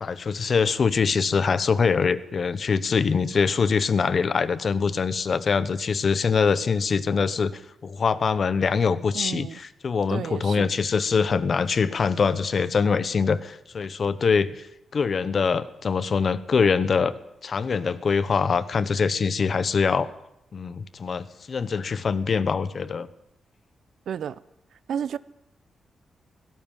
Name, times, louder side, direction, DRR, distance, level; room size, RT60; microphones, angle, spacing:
voice 1, 0.0-14.7 14.9-17.1 17.4-20.1 20.5-23.1, left 5 dB, 40° left, 1.0 m, -23 dB
voice 2, 9.1-9.6 10.1-10.7 24.1-24.4 24.9-25.2, right 8 dB, 70° right, 0.7 m, -31 dB
18.0 x 17.0 x 9.0 m
wide cardioid pair, 155°, 0 cm